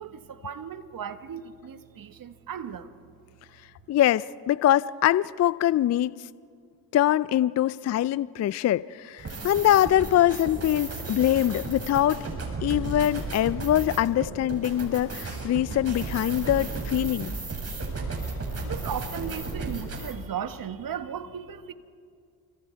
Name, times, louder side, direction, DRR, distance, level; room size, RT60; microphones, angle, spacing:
voice 1, 0.0-2.9 18.2-21.7, right 8 dB, 50° right, 1.7 m, -36 dB
voice 2, 3.9-6.1 6.9-12.3 12.6-17.4, left 12 dB, 35° left, 0.5 m, -23 dB
sound 1, 9.2-20.1, right 3 dB, 30° right, 6.8 m, -34 dB
29.0 x 25.0 x 4.6 m
hypercardioid pair, 65°, 45 cm